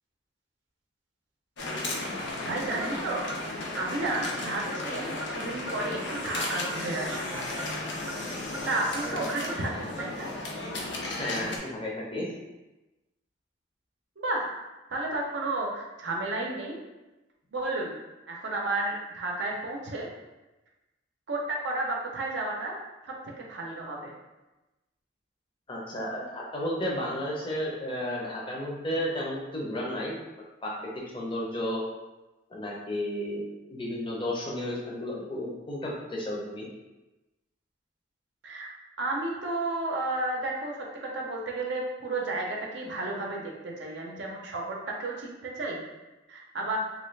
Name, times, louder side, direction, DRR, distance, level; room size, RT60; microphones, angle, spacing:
sound 1, 1.6-11.6, left 2 dB, 65° left, 0.6 m, -34 dB
voice 1, 2.4-3.2 3.8-7.2 8.7-10.3 14.2-14.5 14.9-16.8 17.5-17.9 18.3-20.1 21.3-22.7 23.1-23.2 23.5-24.1 38.4-38.7 39.0-45.8 46.3-46.8, right 2 dB, 65° right, -1 dB, 0.5 m, -32 dB
Clock, 2.8-2.9 3.3-3.4 3.8-3.9 4.2-4.4 4.7-4.8 5.2-5.3 5.7-5.8 6.2-6.3 6.6-6.8 7.1-7.2 7.6-7.7 8.1-8.2 8.5-8.7 9.0-9.1 9.5-9.6 10.0-10.1, equal, 20° right, 0.5 m, -39 dB
voice 2, 11.2-12.3 25.7-30.2 30.6-31.8 32.5-33.4 33.7-36.7, left 1 dB, 25° left, -3 dB, 0.6 m, -33 dB
3.1 x 2.5 x 3.2 m, 1.1 s
head